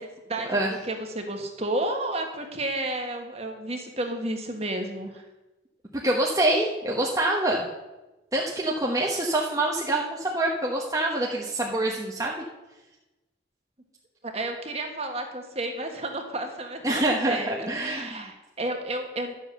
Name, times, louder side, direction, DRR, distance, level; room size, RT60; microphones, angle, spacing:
voice 1, 0.3-5.2 14.2-19.3, right 1 dB, 35° right, 4 dB, 1.6 m, -32 dB
voice 2, 6.0-7.7 8.3-12.4 16.8-18.3, right 1 dB, 15° right, -2 dB, 1.1 m, -26 dB
11.5 x 7.5 x 6.8 m, 1.1 s
head